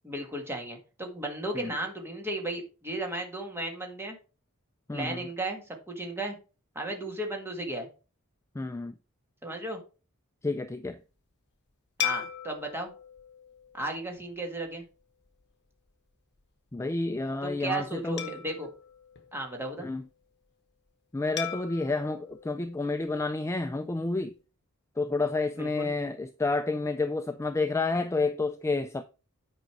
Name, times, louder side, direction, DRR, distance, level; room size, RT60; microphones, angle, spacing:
voice 1, 0.0-4.2 4.9-6.4 6.7-7.9 9.4-9.8 12.0-12.9 13.7-14.8 17.4-18.7 19.3-19.9 25.6-25.9, right 1 dB, 10° right, 1.7 m, -35 dB
voice 2, 8.6-8.9 10.4-11.0 16.7-18.2 19.8-20.0 21.1-24.3 25.0-29.0, left 3 dB, 10° left, 0.3 m, -30 dB
sound 1, 12.0-14.7 15.3-15.4 18.2-20.0 21.4-23.7, left 10 dB, 50° left, 1.1 m, -39 dB
9.3 x 5.2 x 4.6 m
head